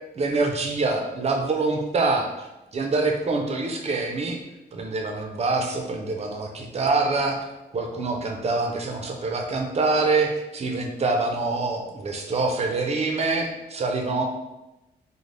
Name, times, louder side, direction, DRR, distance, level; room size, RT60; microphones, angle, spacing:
voice 1, 0.1-4.4 4.7-7.4 7.7-14.2, right 3 dB, 35° right, 3 dB, 0.4 m, -25 dB
3.8 x 2.0 x 3.2 m, 0.98 s
wide cardioid pair, 160°, 18 cm